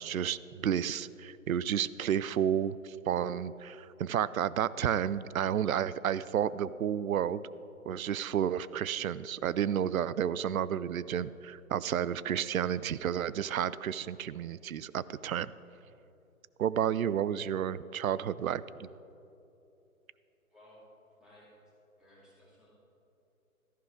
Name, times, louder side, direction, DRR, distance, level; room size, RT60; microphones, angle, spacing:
voice 1, 0.0-7.4 7.9-15.5 16.6-18.9, right 9 dB, 70° right, 18 dB, 0.5 m, -31 dB
voice 2, 20.5-20.8 21.2-21.5 22.0-22.7, left 1 dB, ahead, -9 dB, 2.8 m, -58 dB
14.0 x 11.0 x 3.7 m, 2.9 s
figure-of-eight pair, 145°, 44 cm